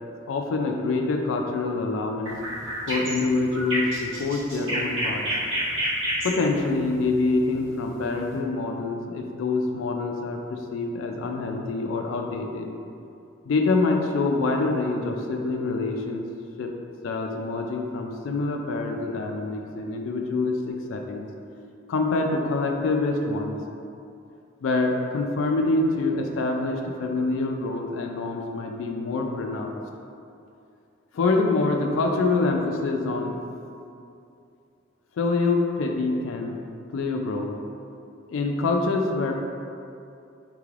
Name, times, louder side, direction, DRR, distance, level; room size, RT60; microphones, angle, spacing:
voice 1, 0.3-2.4 2.9-5.3 6.2-12.7 13.4-16.3 16.6-16.7 17.0-21.3 21.9-23.6 24.6-29.8 31.1-33.4 35.2-36.5 36.9-37.5 38.3-39.4, left 3 dB, 85° left, 3 dB, 0.3 m, -26 dB
sound 1, 2.2-8.3, equal, 80° right, 1.4 m, -29 dB
3.7 x 3.1 x 2.4 m, 2.6 s
head